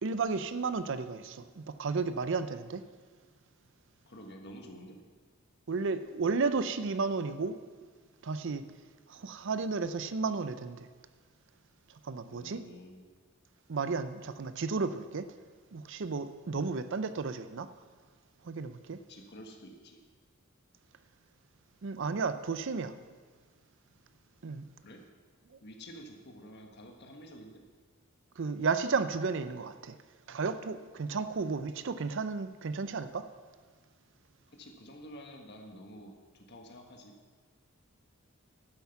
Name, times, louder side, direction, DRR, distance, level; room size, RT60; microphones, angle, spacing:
voice 1, 0.0-2.8 5.7-7.6 8.2-8.6 9.1-10.9 12.0-12.6 13.7-15.3 15.7-17.7 18.4-19.0 21.8-22.9 24.4-24.7 28.4-30.0 30.3-33.3, right 4 dB, 60° right, 12 dB, 0.5 m, -33 dB
voice 2, 4.1-5.0 12.3-13.1 19.1-20.0 24.8-25.0 25.6-27.6 31.1-31.6 34.5-37.1, equal, 55° left, 3 dB, 1.6 m, -49 dB
11.5 x 9.4 x 5.9 m, 1.5 s
head